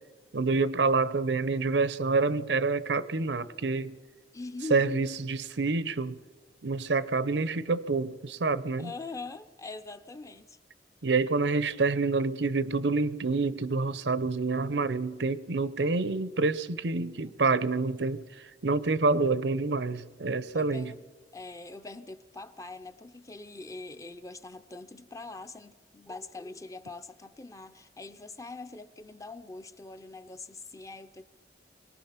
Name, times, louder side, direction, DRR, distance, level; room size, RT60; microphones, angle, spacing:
voice 1, 0.3-4.0 4.7-6.2 6.6-8.9 11.0-18.3 18.6-20.9, right 3 dB, 80° right, 0.7 m, -27 dB
voice 2, 4.3-5.0 8.8-10.6 17.2-17.4 20.5-21.0 21.3-31.2, left 3 dB, 20° left, 0.6 m, -43 dB
24.5 x 18.5 x 5.8 m
head